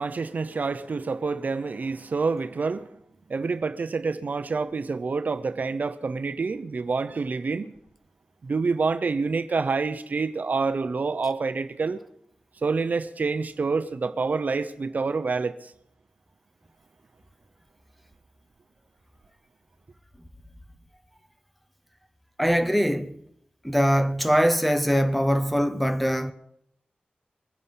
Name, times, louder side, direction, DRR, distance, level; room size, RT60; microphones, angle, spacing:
voice 1, 0.0-2.9 3.3-7.7 8.4-12.0 12.6-15.7, right 4 dB, 60° right, 0.8 m, -27 dB
voice 2, 22.4-23.2 23.6-26.3, equal, ahead, 1.1 m, -22 dB
23.0 x 9.9 x 5.6 m
wide cardioid pair, 85°, 3 cm